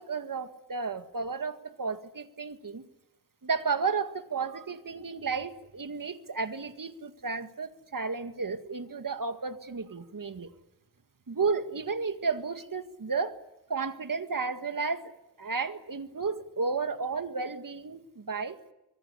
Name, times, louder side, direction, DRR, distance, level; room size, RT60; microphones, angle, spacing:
voice 1, 0.0-2.8 3.4-10.5 11.3-13.4 13.7-15.1 15.4-18.6, right 4 dB, 55° right, 8 dB, 2.0 m, -33 dB
25.0 x 21.0 x 9.8 m, 0.93 s
wide cardioid pair, 90°, 39 cm